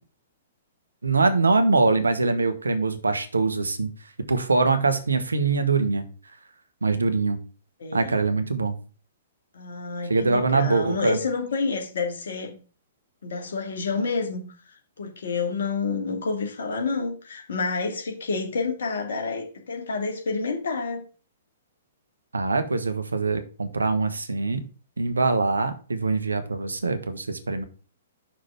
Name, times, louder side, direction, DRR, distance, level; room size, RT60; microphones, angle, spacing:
voice 1, 1.0-3.9 4.3-6.0 6.8-7.4 7.9-8.7 10.1-11.2 22.3-24.6 25.0-27.6, right 3 dB, 75° right, 10 dB, 1.1 m, -23 dB
voice 2, 7.8-8.2 9.5-12.5 13.2-14.4 15.0-21.0, left 4 dB, 60° left, 2 dB, 2.3 m, -29 dB
5.8 x 5.0 x 5.7 m, 0.37 s
figure-of-eight pair, 115°, 0 cm